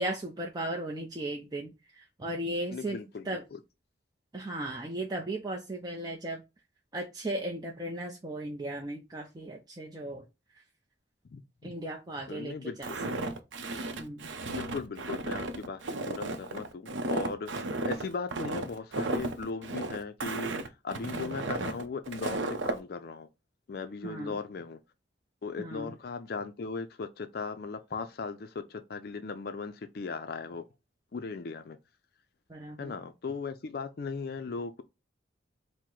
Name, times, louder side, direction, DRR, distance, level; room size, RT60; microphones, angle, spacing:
voice 1, 0.0-3.0 3.2-3.4 4.3-6.4 6.9-10.3 11.6-12.9 13.2-13.3 14.0-14.3 21.1-21.4 24.0-24.4 25.6-25.9 32.5-33.0, right 1 dB, 20° right, 0.4 m, -36 dB
voice 2, 2.7-3.6 11.3-11.7 12.3-13.0 14.5-20.6 20.8-23.3 23.7-24.8 25.4-30.6 31.1-31.8 32.8-34.8, left 4 dB, 55° left, 0.4 m, -38 dB
Walk footsteps, 12.8-22.8, right 2 dB, 75° right, 0.6 m, -34 dB
4.6 x 2.1 x 3.7 m
head